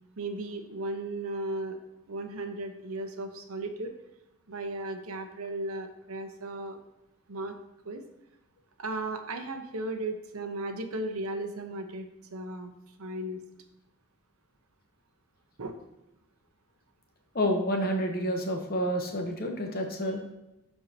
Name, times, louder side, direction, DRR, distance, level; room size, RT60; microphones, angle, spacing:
voice 1, 0.2-1.8 2.1-3.9 4.5-6.8 7.3-7.5 7.8-8.0 8.8-12.7 13.0-13.4 15.6-15.7, right 2 dB, 80° right, 6 dB, 0.9 m, -35 dB
voice 2, 17.3-20.2, equal, 45° left, 3 dB, 1.0 m, -29 dB
12.0 x 4.6 x 2.8 m, 0.93 s
head